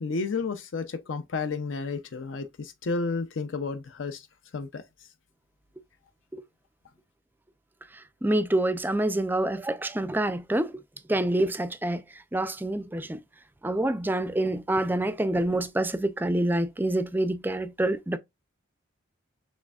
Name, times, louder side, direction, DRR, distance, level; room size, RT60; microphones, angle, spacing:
voice 1, 0.0-4.3 4.5-4.8, left 4 dB, 70° left, 0.5 m, -31 dB
voice 2, 8.2-10.7 11.1-12.0 12.3-13.2 13.6-18.2, right 1 dB, 10° right, 0.4 m, -26 dB
6.3 x 3.3 x 2.3 m
head